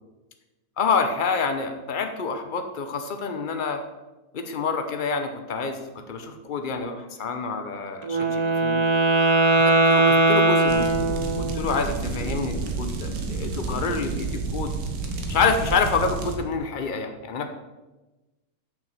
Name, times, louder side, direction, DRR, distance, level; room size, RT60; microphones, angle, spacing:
voice 1, 0.8-3.8 4.3-5.8 6.1-8.8 9.5-14.7 15.3-17.5, left 5 dB, 90° left, 6 dB, 0.4 m, -27 dB
Wind instrument woodwind instrument, 8.0-11.7, right 2 dB, 40° right, 0.5 m, -20 dB
sound 1, 10.7-16.4, right 3 dB, 85° right, 1.8 m, -30 dB
6.9 x 6.1 x 7.5 m, 1.1 s
omnidirectional pair, 1.9 m